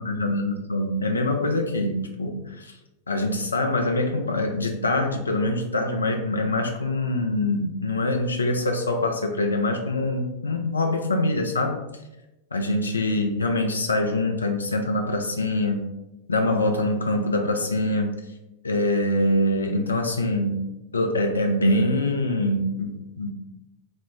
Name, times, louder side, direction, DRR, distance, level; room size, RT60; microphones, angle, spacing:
voice 1, 0.0-2.7 3.1-11.8 12.5-15.9 16.3-18.2 18.6-20.7 20.9-23.3, left 1 dB, 75° left, 4 dB, 0.4 m, -24 dB
4.0 x 2.0 x 2.2 m, 0.96 s
figure-of-eight pair, 90°, 0 cm